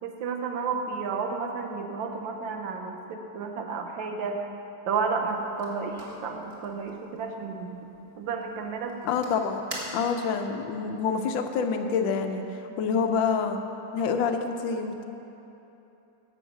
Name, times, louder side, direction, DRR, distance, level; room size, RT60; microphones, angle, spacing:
voice 1, 0.0-4.4 4.8-9.0, right 5 dB, 75° right, 3 dB, 1.5 m, -32 dB
sound 1, 5.2-10.4, right 1 dB, 20° right, 1.3 m, -45 dB
voice 2, 9.0-9.6 9.9-13.6 13.9-15.0, left 5 dB, 75° left, 6 dB, 1.4 m, -27 dB
11.0 x 7.1 x 5.9 m, 3.0 s
omnidirectional pair, 2.2 m